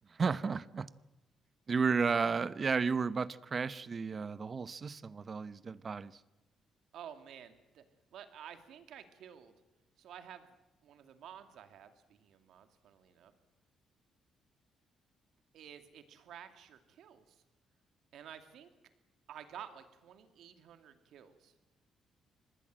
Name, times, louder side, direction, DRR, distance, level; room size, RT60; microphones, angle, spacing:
voice 1, 0.1-0.9 1.7-6.2, right 5 dB, 40° right, 0.9 m, -33 dB
voice 2, 6.9-7.8 8.1-9.6 10.0-10.6 10.8-13.3 15.5-17.4 18.1-18.7 19.3-21.5, right 9 dB, 75° right, 2.4 m, -52 dB
25.5 x 20.0 x 7.7 m
cardioid pair, 90°, 0 cm